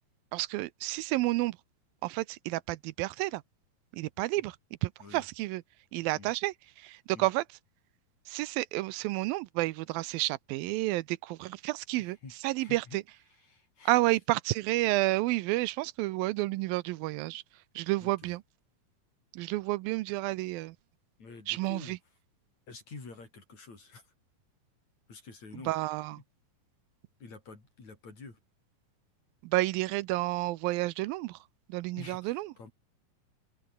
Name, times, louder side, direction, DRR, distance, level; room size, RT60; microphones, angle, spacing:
voice 1, 0.3-1.6 2.0-3.4 4.0-4.5 4.8-5.6 5.9-6.5 7.2-7.4 8.3-12.2 12.4-12.8 13.9-17.4 17.8-18.4 19.3-20.7 21.5-22.0 25.7-26.2 29.5-31.3 31.7-32.5, right 19 dB, 85° right, 2.4 m, -30 dB
voice 2, 12.0-13.0 13.3-14.2 18.0-18.4 21.2-22.1 22.7-24.0 25.1-25.9 26.1-26.2 27.2-28.4 32.0-32.7, left 4 dB, 50° left, 7.4 m, -49 dB
open air
omnidirectional pair, 4.2 m